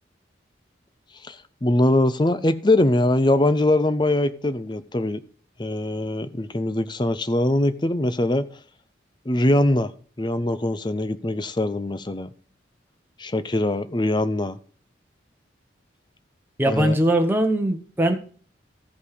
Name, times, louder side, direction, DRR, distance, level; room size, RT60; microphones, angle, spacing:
voice 1, 1.2-5.2 5.6-8.5 9.3-9.9 10.2-12.3 13.2-14.6 16.7-16.9, left 1 dB, 25° left, 13 dB, 0.7 m, -22 dB
voice 2, 16.6-18.2, right 1 dB, 10° right, 3 dB, 1.1 m, -21 dB
15.0 x 5.5 x 4.9 m, 0.43 s
head